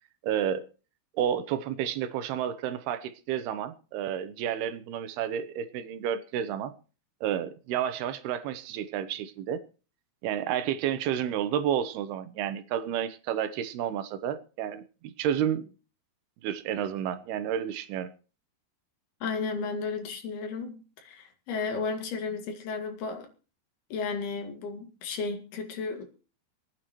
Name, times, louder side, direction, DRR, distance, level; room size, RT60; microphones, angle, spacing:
voice 1, 0.2-0.7 1.1-6.7 7.2-9.6 10.2-15.6 16.4-18.1, right 9 dB, 85° right, 2.9 m, -31 dB
voice 2, 19.2-23.3 23.9-26.0, left 4 dB, 75° left, 4.1 m, -33 dB
27.0 x 9.2 x 3.1 m
omnidirectional pair, 4.5 m